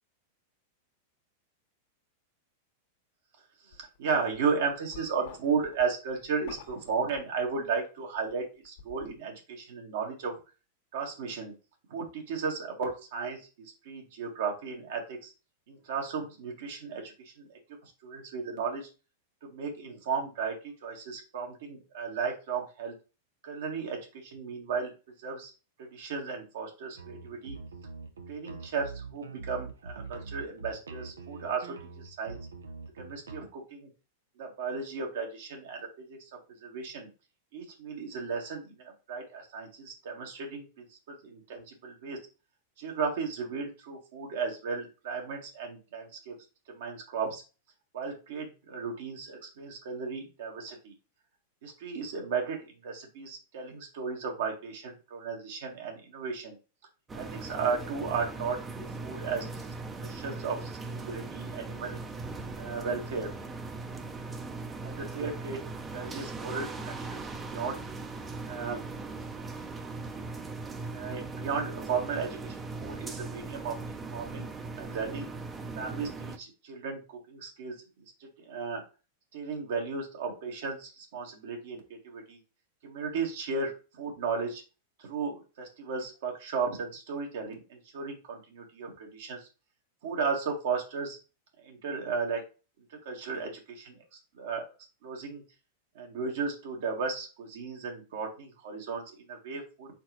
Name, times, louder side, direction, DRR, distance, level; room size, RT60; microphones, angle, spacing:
sound 1, 3.7-4.0 4.3-7.9 8.2-9.2, left 6 dB, 65° left, 1.3 m, -49 dB
voice 1, 4.0-10.3 10.9-11.5 11.9-15.3 15.7-17.6 18.0-18.9 19.4-20.5 20.8-22.9 23.4-24.9 25.2-25.5 25.9-27.6 28.3-32.4 33.0-33.9 34.4-36.3 36.6-37.1 37.5-42.2 42.8-46.3 46.7-47.4 47.9-50.9 51.6-56.5 57.1-59.4 60.0-62.0 62.6-63.3 64.8-65.6 65.9-67.8 68.5-68.9 70.9-73.8 74.1-74.5 74.8-75.3 75.8-77.0 77.3-77.7 78.4-78.8 79.3-82.4 82.8-84.6 85.0-89.4 90.0-91.2 91.6-92.4 93.0-94.0 94.4-94.6 95.0-95.4 95.9-99.9, right 5 dB, 65° right, 1 dB, 1.6 m, -35 dB
sound 2, 27.0-33.4, right 4 dB, 85° right, 0.6 m, -43 dB
sound 3, 57.1-76.4, right 3 dB, 20° right, 0.7 m, -39 dB
4.4 x 3.9 x 3.0 m, 0.31 s
hypercardioid pair, 100°, 0 cm